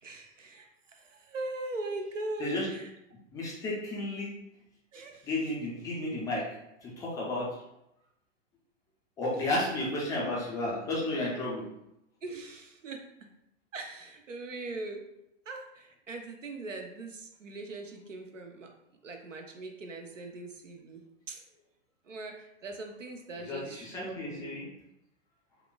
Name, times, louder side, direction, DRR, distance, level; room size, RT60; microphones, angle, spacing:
voice 1, 0.0-2.9 4.9-5.3 12.2-13.1 13.7-15.0 15.5-18.7 19.0-21.4 22.0-24.6, right 2 dB, 80° right, 4 dB, 0.6 m, -41 dB
voice 2, 3.3-4.3 5.2-6.4 6.8-7.6 9.2-11.6 23.4-24.7, left 1 dB, 10° left, -5 dB, 0.4 m, -32 dB
5.7 x 2.1 x 2.3 m, 0.83 s
figure-of-eight pair, 100°, 37 cm